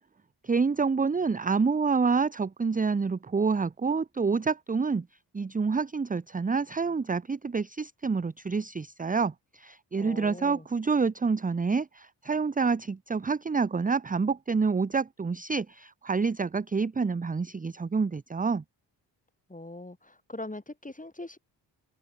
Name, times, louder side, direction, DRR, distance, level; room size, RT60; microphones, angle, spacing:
voice 1, 0.4-5.1 5.3-18.6, right 4 dB, 20° right, 0.7 m, -27 dB
voice 2, 10.0-10.7 19.5-21.4, left 2 dB, 20° left, 7.1 m, -41 dB
open air
cardioid pair, 55°, 43 cm